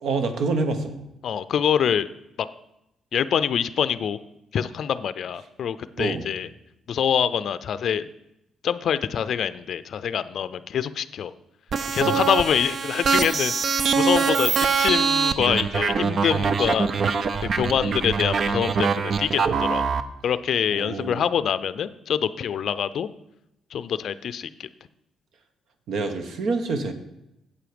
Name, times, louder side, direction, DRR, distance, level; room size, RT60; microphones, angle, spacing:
voice 1, 0.0-1.0 6.0-6.3 12.0-12.2 20.7-21.3 25.9-26.9, right 3 dB, 70° right, 8 dB, 1.2 m, -27 dB
voice 2, 1.2-2.1 2.4-2.5 3.1-4.2 4.5-6.5 6.9-8.1 8.6-11.3 11.9-19.8 20.2-23.1 23.7-24.7, left 8 dB, 65° left, 14 dB, 0.4 m, -25 dB
sound 1, 11.7-20.0, right 5 dB, 55° right, 0.6 m, -23 dB
8.4 x 7.7 x 5.1 m, 0.85 s
cardioid pair, 90°, 0 cm